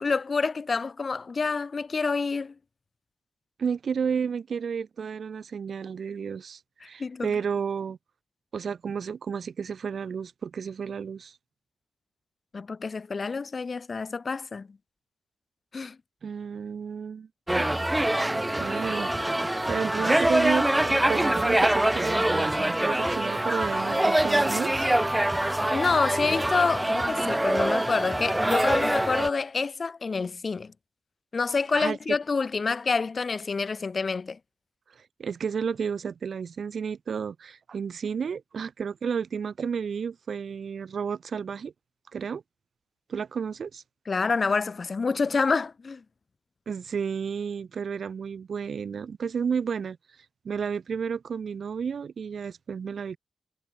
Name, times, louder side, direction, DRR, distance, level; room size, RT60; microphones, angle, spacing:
voice 1, 0.0-2.5 7.0-7.3 12.5-14.7 15.7-16.0 25.7-30.7 31.3-34.4 44.1-46.0, left 4 dB, 40° left, 0.9 m, -27 dB
voice 2, 3.6-8.0 8.5-11.4 16.2-17.3 17.6-17.7 18.3-19.1 19.7-24.9 31.7-32.0 34.9-41.7 42.1-42.4 43.1-43.8 46.7-50.0 50.4-53.2, right 6 dB, 65° right, 2.3 m, -32 dB
sound 1, 17.5-29.3, right 1 dB, 10° right, 1.4 m, -24 dB
wide cardioid pair, 105°, 0 cm